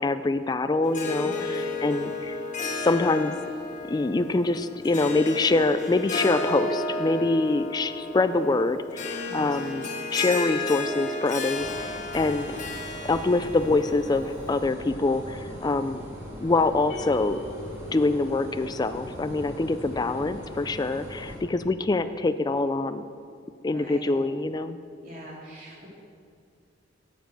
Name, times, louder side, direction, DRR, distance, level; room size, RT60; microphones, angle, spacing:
voice 1, 0.0-2.4 2.8-3.4 3.9-12.6 13.0-16.0 16.4-17.4 17.9-23.0 23.6-24.8, left 2 dB, 20° left, 11 dB, 0.3 m, -25 dB
Harp, 0.8-14.6, left 3 dB, 40° left, 1.2 m, -33 dB
voice 2, 1.2-1.6 8.2-8.3 9.3-9.6 19.9-20.2 23.7-24.2 25.0-25.9, equal, 50° right, -5 dB, 3.4 m, -43 dB
sound 1, 11.5-21.4, equal, 15° right, 2.5 m, -41 dB
sound 2, 16.9-19.4, left 1 dB, 75° left, 1.9 m, -42 dB
10.5 x 7.3 x 7.5 m, 2.2 s
head